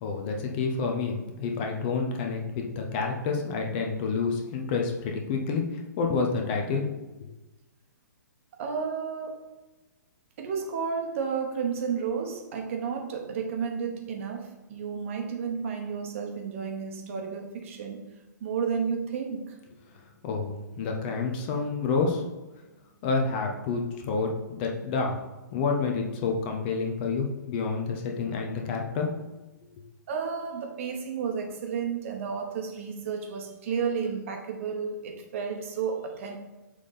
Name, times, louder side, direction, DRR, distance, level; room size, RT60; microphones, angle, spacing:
voice 1, 0.0-6.9 20.2-22.2 23.0-25.2 25.5-29.1, left 4 dB, 30° left, 2 dB, 1.0 m, -29 dB
voice 2, 8.6-9.4 10.4-18.0 18.4-19.5 30.1-36.4, right 6 dB, 40° right, 3 dB, 1.3 m, -32 dB
6.5 x 3.7 x 5.6 m, 1.1 s
figure-of-eight pair, 120°, 10 cm